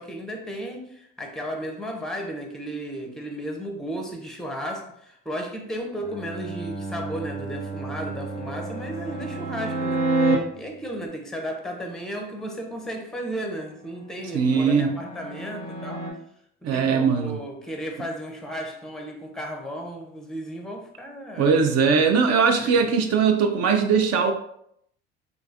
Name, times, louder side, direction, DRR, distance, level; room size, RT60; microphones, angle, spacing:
voice 1, 0.0-10.2 10.6-16.1 16.6-21.5 22.6-22.9, right 1 dB, ahead, 2 dB, 0.6 m, -34 dB
Bowed string instrument, 6.0-10.8, right 4 dB, 15° right, 1.0 m, -36 dB
sound 1, 8.1-10.4 13.7-16.1, right 2 dB, 70° right, 1.1 m, -28 dB
voice 2, 14.3-14.9 16.6-17.4 21.4-24.3, right 5 dB, 50° right, 5 dB, 0.5 m, -20 dB
3.1 x 2.4 x 2.4 m, 0.71 s
hypercardioid pair, 75°, 32 cm